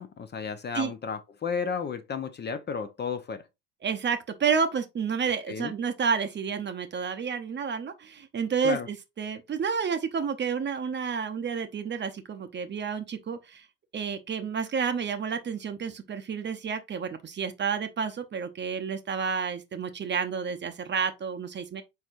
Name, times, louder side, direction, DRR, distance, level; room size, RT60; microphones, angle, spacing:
voice 1, 0.0-3.4 5.5-5.7 8.6-8.9, left 6 dB, 30° left, 0.7 m, -33 dB
voice 2, 3.8-13.6 13.9-21.8, right 6 dB, 30° right, 0.8 m, -30 dB
4.7 x 4.2 x 2.4 m
hypercardioid pair, 75°, 35 cm